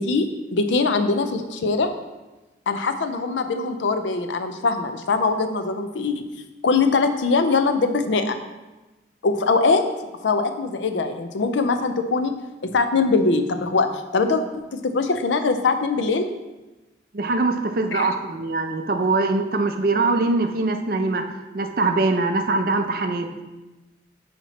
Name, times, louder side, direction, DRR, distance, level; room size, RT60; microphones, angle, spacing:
voice 1, 0.0-1.9 2.7-6.2 6.6-8.4 9.2-9.8 10.2-12.3 12.7-13.9 14.1-14.4 14.7-16.3 17.9-18.1, left 4 dB, 85° left, 8 dB, 0.5 m, -22 dB
voice 2, 17.1-21.2 21.5-23.3, right 3 dB, 50° right, 6 dB, 0.5 m, -22 dB
5.7 x 4.3 x 4.1 m, 1.1 s
head